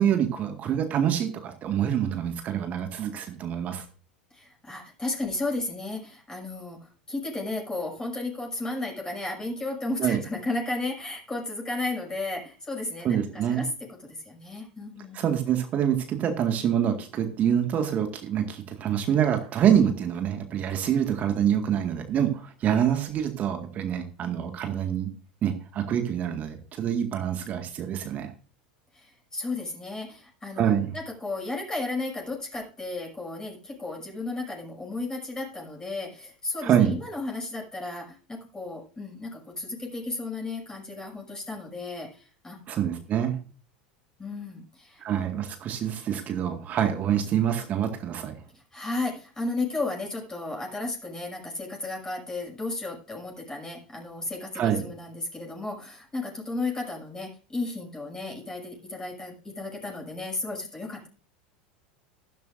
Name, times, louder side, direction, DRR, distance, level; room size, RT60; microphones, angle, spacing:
voice 1, 0.0-3.8 10.0-10.2 13.0-13.6 15.1-25.1 25.4-28.3 30.6-30.9 36.6-36.9 42.7-43.4 45.0-48.3 54.5-54.8, right 9 dB, 35° right, 6 dB, 1.9 m, -26 dB
voice 2, 4.3-15.2 28.9-42.6 44.2-45.0 48.5-61.1, left 2 dB, 15° left, -1 dB, 6.6 m, -34 dB
15.0 x 13.0 x 2.6 m, 0.38 s
figure-of-eight pair, 80°, 4 cm